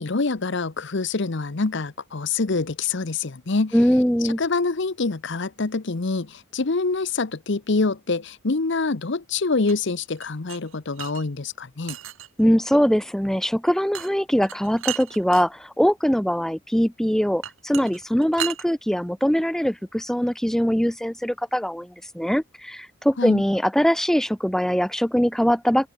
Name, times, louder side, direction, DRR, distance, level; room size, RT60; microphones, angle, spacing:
voice 1, 0.0-3.7 4.4-12.0 23.2-23.4, left 3 dB, 55° left, 0.9 m, -25 dB
voice 2, 3.7-4.4 12.4-25.9, equal, ahead, 0.7 m, -22 dB
sound 1, 9.7-11.2 11.9-12.4 13.9-14.1 14.4-15.5 17.4-18.6, right 11 dB, 70° right, 3.0 m, -34 dB
open air
head